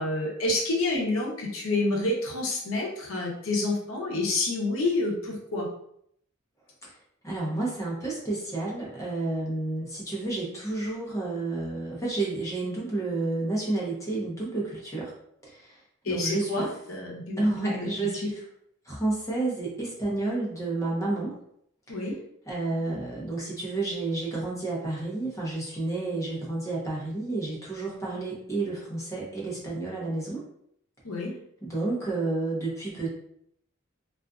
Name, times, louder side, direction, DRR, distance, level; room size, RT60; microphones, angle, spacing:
voice 1, 0.0-5.7 16.0-18.1 21.9-22.1 31.0-31.3, left 2 dB, 85° left, -2 dB, 0.7 m, -28 dB
voice 2, 7.2-15.1 15.4-15.8 16.0-16.7 17.4-18.4 18.8-21.3 21.9-22.0 22.5-30.4 31.6-33.1, right 2 dB, 15° left, -5 dB, 0.8 m, -30 dB
2.5 x 2.4 x 2.3 m, 0.71 s
head